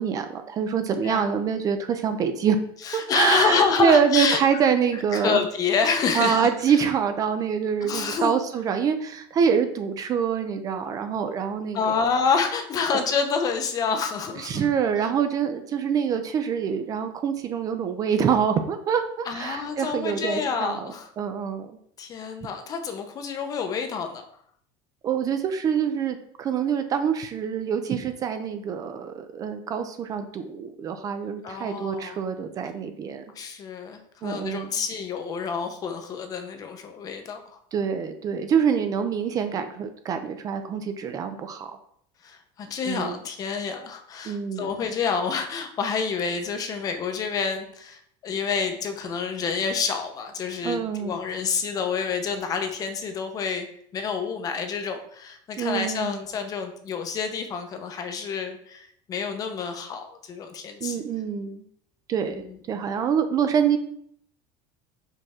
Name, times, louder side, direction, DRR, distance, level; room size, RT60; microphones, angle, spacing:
voice 1, 0.0-2.6 2.9-5.4 6.1-12.0 12.9-13.0 14.4-21.7 25.0-33.2 34.2-34.7 37.7-41.7 42.9-43.2 44.2-44.7 50.6-51.2 55.6-56.2 60.8-61.6 62.1-63.8, right 7 dB, 30° right, 8 dB, 0.5 m, -25 dB
voice 2, 2.8-4.4 5.1-6.8 7.8-8.3 11.7-14.6 19.3-21.1 22.0-24.3 31.4-32.2 33.3-37.4 42.2-53.7 53.9-61.0 62.3-62.6, left 5 dB, 30° left, 6 dB, 0.8 m, -28 dB
5.6 x 5.4 x 3.6 m, 0.65 s
cardioid pair, 165°, 13 cm